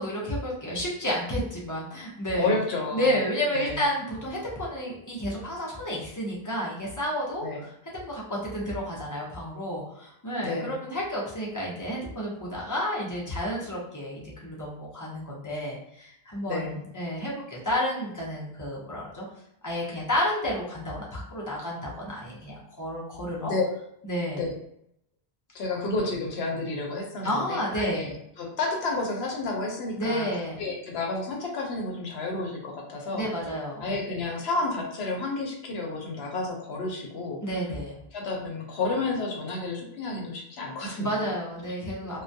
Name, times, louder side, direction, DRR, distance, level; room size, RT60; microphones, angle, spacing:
voice 1, 0.0-2.5 2.9-19.3 19.6-23.5 24.0-24.4 25.8-25.9 27.2-28.0 30.0-30.6 33.1-33.9 37.4-38.0 41.0-42.2, equal, 25° left, -5 dB, 0.5 m, -31 dB
voice 2, 2.4-3.1 3.5-3.8 7.4-7.6 10.4-10.8 16.5-16.8 23.4-23.7 24.4-24.5 25.5-30.3 30.6-33.3 33.8-37.4 38.1-41.3 42.0-42.2, left 3 dB, 75° left, 0 dB, 0.8 m, -31 dB
2.2 x 2.2 x 2.5 m, 0.75 s
omnidirectional pair, 1.1 m